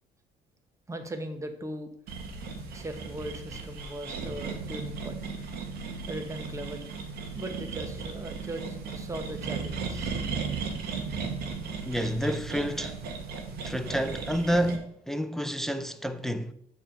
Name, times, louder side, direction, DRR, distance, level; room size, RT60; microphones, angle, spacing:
voice 1, 0.9-1.9 2.7-5.2 6.1-6.9 7.3-10.1, right 1 dB, 20° right, 1.0 m, -39 dB
sound 1, 2.1-14.8, right 5 dB, 70° right, 1.3 m, -36 dB
voice 2, 11.8-13.0 13.6-16.5, equal, ahead, 0.4 m, -29 dB
7.2 x 3.5 x 5.6 m
cardioid pair, 110°, 17 cm